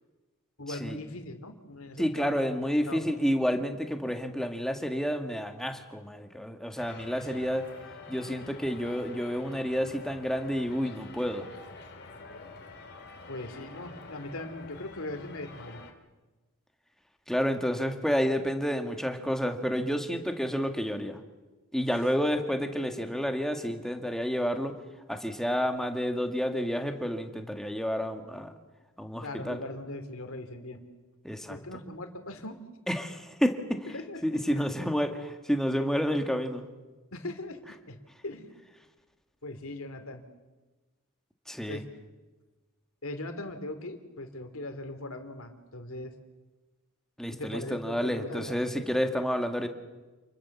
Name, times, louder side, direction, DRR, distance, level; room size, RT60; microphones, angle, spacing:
voice 1, 0.6-2.5 2.9-3.2 7.0-7.3 13.3-15.8 29.2-30.8 31.5-32.6 33.9-34.2 34.5-34.7 37.1-37.6 37.9-38.0 38.2-38.5 39.4-40.2 41.7-41.8 43.0-46.1 47.3-48.6, left 2 dB, 70° left, 7 dB, 2.9 m, -40 dB
voice 2, 2.0-7.6 8.1-11.4 17.3-21.2 21.7-24.7 25.1-28.5 29.0-29.6 31.2-31.6 32.9-33.5 34.2-36.6 41.5-41.8 47.2-49.7, equal, ahead, 5 dB, 1.9 m, -30 dB
sound 1, 6.8-15.9, left 3 dB, 50° left, 2.9 m, -47 dB
28.5 x 21.5 x 7.3 m, 1.2 s
head